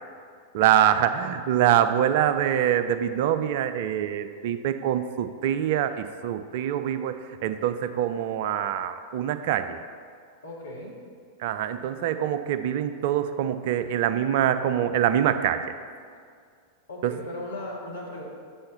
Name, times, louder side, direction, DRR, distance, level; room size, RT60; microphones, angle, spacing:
voice 1, 0.5-7.1 7.4-9.8 11.4-15.6 17.0-17.1, right 10 dB, 50° right, 10 dB, 0.4 m, -24 dB
voice 2, 10.4-11.0 11.8-12.2 16.9-18.2, left 1 dB, 75° left, -4 dB, 2.0 m, -38 dB
6.9 x 5.5 x 6.8 m, 2.1 s
figure-of-eight pair, 90°, 0 cm